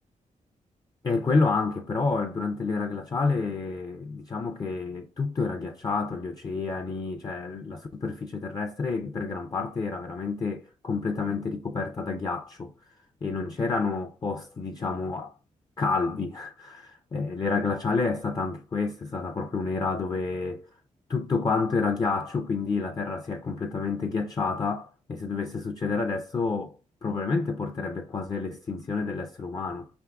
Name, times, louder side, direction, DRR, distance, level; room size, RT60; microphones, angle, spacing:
voice 1, 1.0-12.7 13.2-15.3 15.8-20.6 21.1-26.7 27.0-29.9, left 4 dB, 30° left, 0.4 m, -29 dB
5.2 x 3.5 x 2.3 m
cardioid pair, 95°, 14 cm